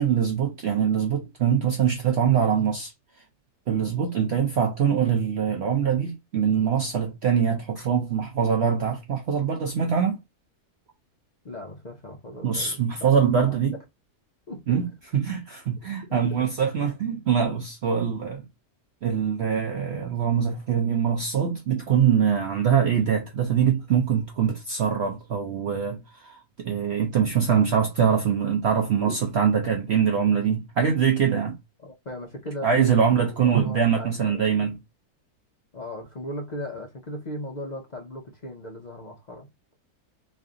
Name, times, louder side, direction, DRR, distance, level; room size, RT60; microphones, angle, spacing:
voice 1, 0.0-2.9 3.7-10.2 12.4-13.7 14.7-14.9 15.1-18.4 19.0-31.6 32.6-34.8, right 7 dB, 65° right, 0.6 m, -23 dB
voice 2, 11.4-13.6 14.5-14.8 16.1-16.5 17.9-18.0 31.8-34.6 35.7-39.5, left 1 dB, 70° left, 0.4 m, -38 dB
3.2 x 2.6 x 3.6 m
omnidirectional pair, 1.7 m